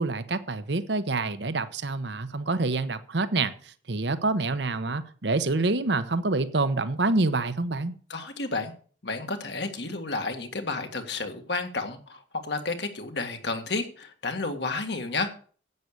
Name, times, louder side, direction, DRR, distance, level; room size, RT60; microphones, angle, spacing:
voice 1, 0.0-3.5 3.9-8.0, right 3 dB, 70° right, 1.0 m, -27 dB
voice 2, 8.1-8.7 9.0-15.3, left 3 dB, 70° left, 1.9 m, -31 dB
11.0 x 8.5 x 6.6 m
head